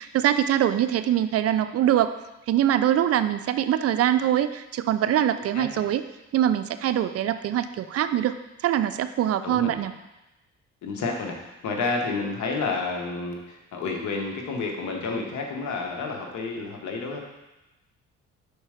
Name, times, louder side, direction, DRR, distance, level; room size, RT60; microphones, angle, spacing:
voice 1, 0.0-2.1 2.5-6.0 6.3-8.4 8.6-9.9, right 11 dB, 55° right, 11 dB, 0.4 m, -23 dB
voice 2, 9.4-9.8 10.8-17.2, left 4 dB, 75° left, 1 dB, 1.2 m, -30 dB
5.1 x 4.3 x 4.9 m, 0.99 s
cardioid pair, 80°, 29 cm